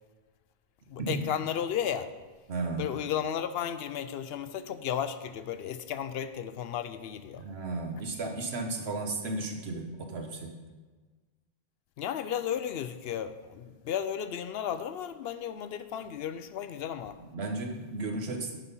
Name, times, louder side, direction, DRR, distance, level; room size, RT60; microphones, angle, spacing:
voice 1, 0.9-2.1 2.8-7.4 12.0-17.2, left 9 dB, 75° left, 11 dB, 0.8 m, -34 dB
voice 2, 2.5-2.9 7.4-10.5 17.3-18.6, right 3 dB, 90° right, 3 dB, 1.3 m, -34 dB
10.5 x 4.1 x 5.5 m, 1.4 s
omnidirectional pair, 1.0 m